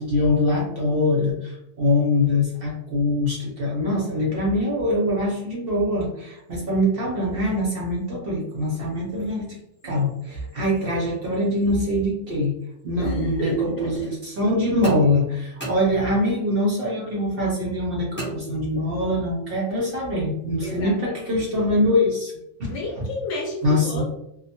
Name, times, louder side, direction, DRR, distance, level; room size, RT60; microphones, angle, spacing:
voice 1, 0.0-9.6 9.8-12.5 12.8-22.3 22.6-23.0 23.6-24.0, left 1 dB, 60° right, -2 dB, 0.6 m, -23 dB
voice 2, 13.0-13.9 15.7-15.9 20.6-21.4 22.7-24.0, left 2 dB, 70° left, 0 dB, 0.9 m, -32 dB
sound 1, 14.8-16.5 18.2-19.1, equal, 10° left, 0.8 m, -36 dB
2.2 x 2.1 x 2.7 m, 0.80 s
omnidirectional pair, 1.3 m